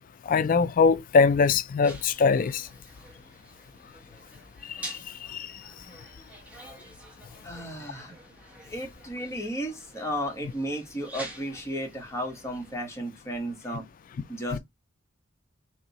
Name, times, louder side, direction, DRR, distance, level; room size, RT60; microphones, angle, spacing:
voice 1, 0.3-2.7 4.7-5.5, left 5 dB, 45° left, 0.3 m, -23 dB
sound 1, 1.8-12.8, right 1 dB, 5° right, 1.1 m, -47 dB
voice 2, 7.4-8.1 8.6-13.8 14.3-14.6, equal, 15° left, 1.2 m, -34 dB
3.5 x 2.7 x 4.0 m
head